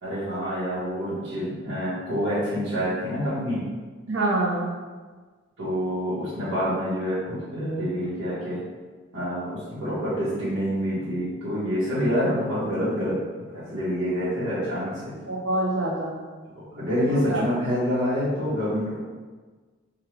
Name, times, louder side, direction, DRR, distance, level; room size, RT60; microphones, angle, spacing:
voice 1, 0.0-3.6 5.6-8.6 9.1-13.2 13.5-15.1 16.7-19.0, equal, 90° right, -13 dB, 1.2 m, -27 dB
voice 2, 4.1-4.7 15.3-16.2 17.1-17.6, right 2 dB, 70° right, -3 dB, 0.8 m, -26 dB
3.6 x 2.3 x 3.2 m, 1.4 s
head